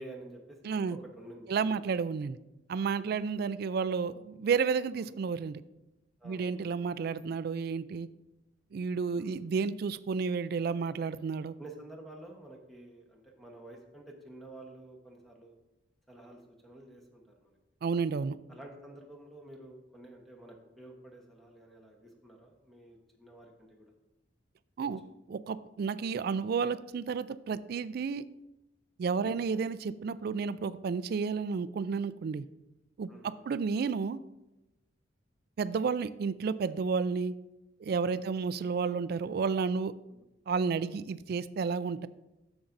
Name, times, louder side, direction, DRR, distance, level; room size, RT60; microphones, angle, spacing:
voice 1, 0.0-1.8 4.9-5.1 6.2-6.6 9.1-9.4 11.6-15.5 16.1-17.6 18.5-23.9 24.8-24.9 29.1-29.4 33.1-33.5 38.1-38.3 40.1-40.2, right 1 dB, ahead, 0 dB, 1.1 m, -50 dB
voice 2, 0.6-1.0 1.5-2.4 2.7-5.6 6.2-8.1 8.7-11.6 17.8-18.4 24.8-25.0 25.3-28.2 29.0-32.5 33.0-34.2 35.6-37.4 37.8-40.0 40.5-42.1, right 5 dB, 55° right, 16 dB, 0.3 m, -31 dB
11.0 x 7.0 x 2.6 m, 0.98 s
head